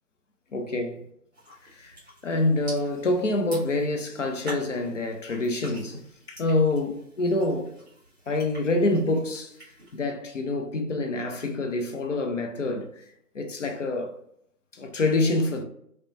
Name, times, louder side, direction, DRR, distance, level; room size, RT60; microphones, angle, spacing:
voice 1, 0.5-1.0 1.7-2.0 2.2-6.0 6.3-7.7 8.3-9.5 9.9-12.9 13.3-14.1 14.7-15.6, left 2 dB, 50° left, 0.5 m, -26 dB
sound 1, 1.3-10.0, right 1 dB, 15° right, 0.6 m, -46 dB
2.9 x 2.1 x 2.4 m
figure-of-eight pair, 145°, 48 cm